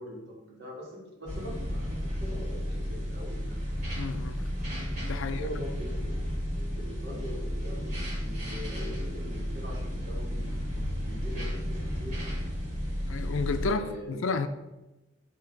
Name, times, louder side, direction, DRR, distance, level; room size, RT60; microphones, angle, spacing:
voice 1, 0.0-3.6 5.2-6.2 6.5-12.2 13.6-14.3, equal, 60° right, -4 dB, 2.0 m, -42 dB
sound 1, 1.2-13.7, equal, 40° right, 1.9 m, -33 dB
voice 2, 3.9-4.4 5.0-5.4 13.1-13.8 14.1-14.5, left 4 dB, 85° left, 10 dB, 0.5 m, -31 dB
7.9 x 3.3 x 3.8 m, 1.0 s
head